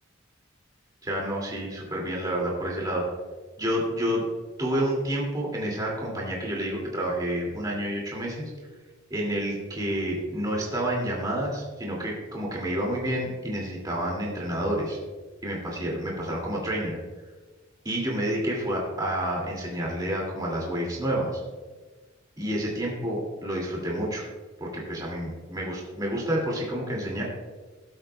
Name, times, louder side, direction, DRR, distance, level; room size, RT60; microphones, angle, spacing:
voice 1, 1.0-3.0 3.6-4.2 4.6-8.5 9.1-15.0 15.4-17.0 17.8-21.4 22.4-24.2 24.6-27.2, right 1 dB, 20° right, -3 dB, 2.3 m, -29 dB
18.5 x 7.9 x 2.2 m, 1.3 s
head